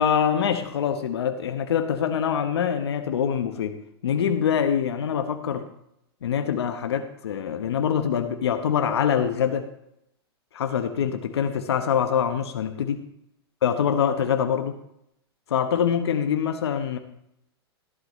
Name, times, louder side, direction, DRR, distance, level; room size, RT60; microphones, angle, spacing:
voice 1, 0.0-3.8 4.0-5.6 6.2-9.6 10.5-13.0 13.6-14.8 15.5-17.0, left 8 dB, 80° left, 7 dB, 1.1 m, -24 dB
13.5 x 11.5 x 3.2 m, 0.77 s
hypercardioid pair, 120°, 14 cm